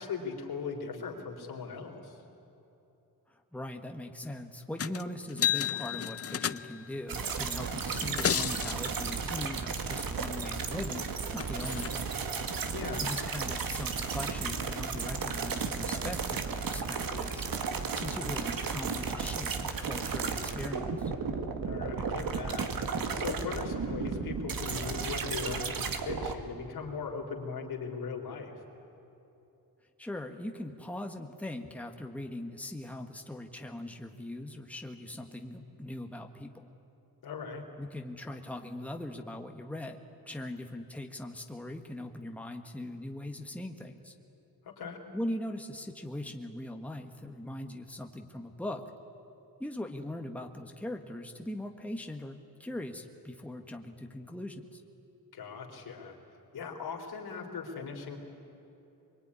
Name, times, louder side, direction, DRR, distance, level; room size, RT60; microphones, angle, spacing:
voice 1, 0.0-2.2 12.7-13.1 21.6-22.7 23.1-28.6 37.2-37.6 44.6-45.0 55.3-56.2 56.5-58.2, left 5 dB, 80° left, 1 dB, 4.1 m, -39 dB
voice 2, 3.3-12.1 13.0-17.5 17.9-21.1 30.0-36.7 37.8-40.0 40.2-44.1 45.1-48.9 49.6-54.8, left 1 dB, 5° left, 4 dB, 1.5 m, -40 dB
sound 1, 4.8-5.0 5.3-6.9 7.9-8.8 10.9-11.0 11.4-11.9 12.8-12.9, left 9 dB, 40° left, 0.6 m, -32 dB
sound 2, 7.1-26.3, right 5 dB, 65° right, 2.0 m, -34 dB
24.5 x 23.0 x 9.9 m, 2.9 s
wide cardioid pair, 115°, 37 cm